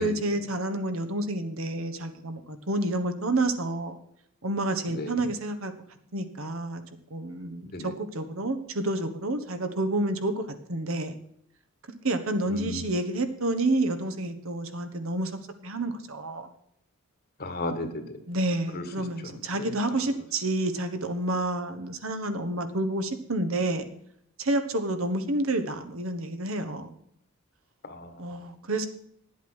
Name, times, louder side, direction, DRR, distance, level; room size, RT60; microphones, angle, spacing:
voice 1, 0.0-4.0 4.4-5.7 6.1-6.8 7.1-10.4 10.7-11.2 12.0-16.5 18.3-23.8 24.4-26.9 28.2-28.9, right 2 dB, 70° right, 8 dB, 1.3 m, -29 dB
voice 2, 4.9-5.3 7.7-7.9 12.5-12.9 17.4-18.2 18.7-19.7 27.8-28.2, left 2 dB, 45° left, 8 dB, 1.6 m, -35 dB
10.5 x 8.2 x 6.3 m, 0.70 s
head